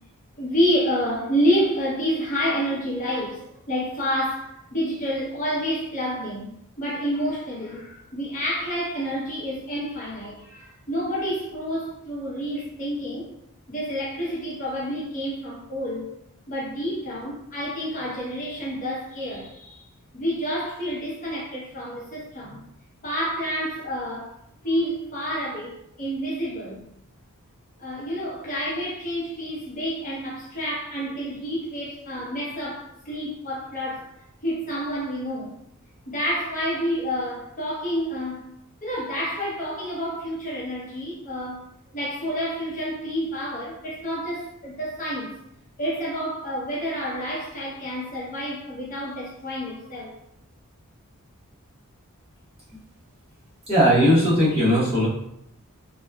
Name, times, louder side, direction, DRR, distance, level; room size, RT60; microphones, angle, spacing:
voice 1, 0.4-13.3 13.7-16.1 16.5-19.8 20.1-22.6 23.0-24.3 24.6-26.8 27.8-34.1 34.4-35.6 36.1-38.4 38.8-41.7 41.9-45.3 45.8-50.2, equal, 35° left, 0.7 m, -29 dB
voice 2, 53.7-55.1, equal, 25° right, 1.1 m, -18 dB
2.8 x 2.2 x 2.3 m
head